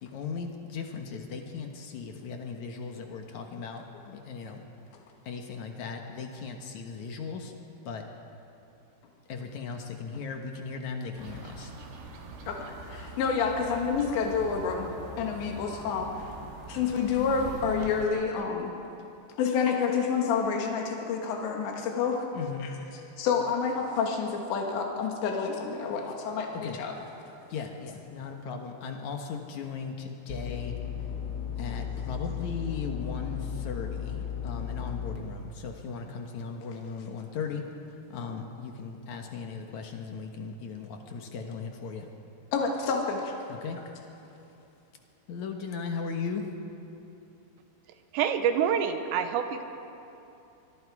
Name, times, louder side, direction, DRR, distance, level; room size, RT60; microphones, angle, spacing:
voice 1, 0.0-4.6 5.3-7.5 7.9-8.0 9.3-11.7 22.4-22.7 26.5-26.7 27.5-30.8 31.6-37.6 38.1-42.1 43.6-43.8 45.3-46.5, left 5 dB, 65° left, 3 dB, 2.0 m, -37 dB
sound 1, 11.2-18.1, right 2 dB, 65° right, 3.7 m, -43 dB
voice 2, 12.5-14.9 15.2-16.3 16.7-18.7 19.4-27.1 42.5-43.3, left 5 dB, 85° left, 1 dB, 4.0 m, -29 dB
sound 2, 30.3-35.2, left 8 dB, 40° left, 1.8 m, -35 dB
voice 3, 48.1-49.6, right 8 dB, 85° right, 7 dB, 3.3 m, -26 dB
25.0 x 22.0 x 4.8 m, 2.9 s
omnidirectional pair, 4.9 m